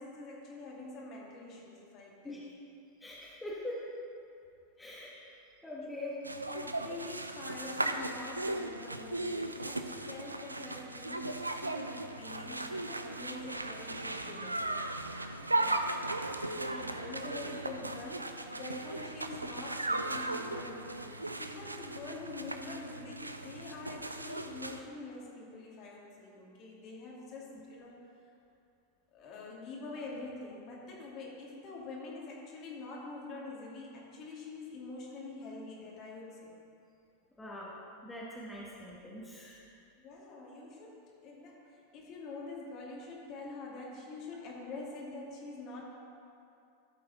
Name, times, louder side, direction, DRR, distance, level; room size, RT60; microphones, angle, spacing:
voice 1, 0.0-2.4 5.8-5.9 6.5-14.6 16.4-28.0 29.1-36.5 40.0-45.9, left 3 dB, 35° left, -3 dB, 2.3 m, -45 dB
voice 2, 3.0-3.8 4.8-5.3 5.6-6.2 15.6-15.8 37.4-37.7 38.0-39.6, left 1 dB, 10° left, -6 dB, 1.6 m, -43 dB
sound 1, 6.2-24.8, right 2 dB, 85° right, 0.5 m, -37 dB
13.5 x 7.7 x 4.1 m, 2.6 s
figure-of-eight pair, 90°, 0 cm